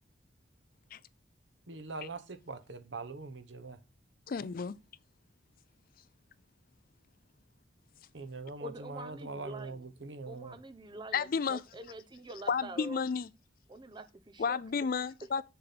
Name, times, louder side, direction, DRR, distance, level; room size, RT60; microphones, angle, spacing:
voice 1, 1.7-3.8 8.1-10.6, right 3 dB, 70° right, 1.2 m, -42 dB
voice 2, 4.3-4.8 11.1-11.6 12.5-13.3 14.4-15.4, left 5 dB, 50° left, 0.4 m, -32 dB
voice 3, 8.6-9.9 10.3-13.0 13.7-14.6, right 2 dB, 25° right, 0.8 m, -46 dB
7.6 x 7.0 x 4.2 m
head